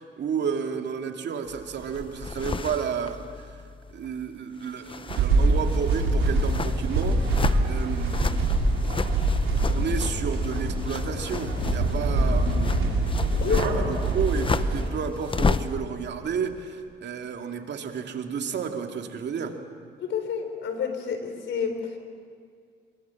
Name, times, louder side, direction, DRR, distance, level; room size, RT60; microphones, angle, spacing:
voice 1, 0.0-3.6 3.9-8.5 9.7-13.1 13.5-19.6, right 6 dB, 60° right, 4 dB, 2.5 m, -32 dB
sound 1, 1.5-4.3 4.6-15.8, left 4 dB, 25° left, 0.9 m, -33 dB
sound 2, 5.1-14.9, right 2 dB, 90° right, 4.3 m, -25 dB
Speech / Wind, 9.0-13.9, left 3 dB, 55° left, 7.0 m, -32 dB
voice 2, 20.0-21.9, left 7 dB, 70° left, 6 dB, 4.1 m, -29 dB
27.0 x 23.5 x 7.2 m, 2.1 s
cardioid pair, 90°, 20 cm